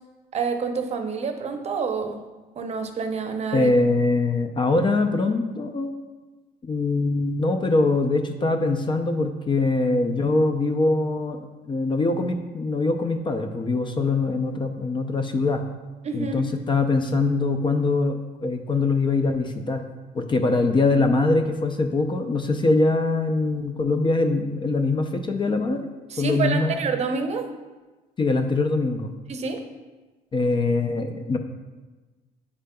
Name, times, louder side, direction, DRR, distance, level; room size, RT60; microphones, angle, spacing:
voice 1, 0.3-2.2 2.6-3.7 16.0-16.3 26.1-27.5 29.3-29.6, right 5 dB, 40° right, 6 dB, 0.7 m, -27 dB
voice 2, 3.5-5.9 6.6-15.6 16.1-19.8 20.1-25.9 26.2-26.8 28.2-29.1 30.3-31.4, left 3 dB, 30° left, 6 dB, 0.4 m, -23 dB
8.3 x 5.0 x 2.2 m, 1.2 s
cardioid pair, 110°, 17 cm